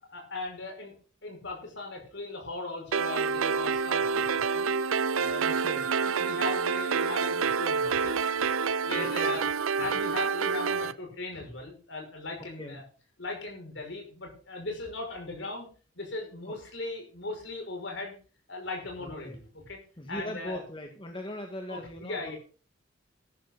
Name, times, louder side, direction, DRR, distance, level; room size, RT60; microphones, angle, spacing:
voice 1, 0.1-0.9 1.2-4.7 5.1-5.5 6.1-8.5 8.8-9.4 9.8-12.8 13.2-15.7 15.9-18.2 18.5-19.8 20.1-20.6 21.7-22.4, left 2 dB, 60° left, 1 dB, 6.0 m, -38 dB
sound 1, 2.9-10.9, right 5 dB, 85° right, 0.6 m, -28 dB
voice 2, 5.4-5.9 8.9-9.4 9.8-9.9 12.4-12.8 16.5-16.6 19.0-19.4 20.0-22.3, left 1 dB, 25° left, 4 dB, 1.5 m, -40 dB
14.0 x 12.5 x 4.0 m, 0.38 s
head